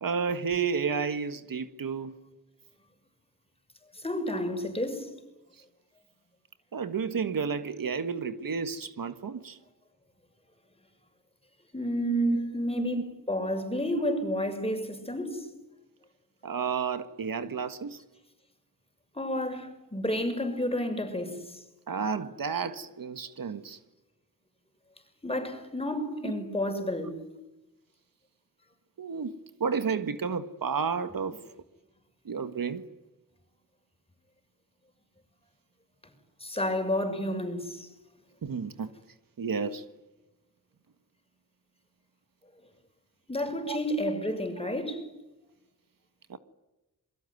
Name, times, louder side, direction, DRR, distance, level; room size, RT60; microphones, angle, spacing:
voice 1, 0.0-2.2 6.7-9.6 12.0-12.4 12.8-13.0 13.9-14.0 16.4-18.0 19.5-19.6 21.9-23.8 26.2-26.3 29.0-31.4 32.2-32.9 38.4-38.9 39.4-39.8 43.6-43.8 46.3-46.4, right 6 dB, 70° right, 1.6 m, -31 dB
voice 2, 4.0-5.1 11.7-15.5 19.2-21.4 25.2-27.2 36.4-37.9 43.3-45.1, left 1 dB, 15° left, 6.3 m, -31 dB
28.0 x 23.0 x 9.5 m
wide cardioid pair, 90°, 35 cm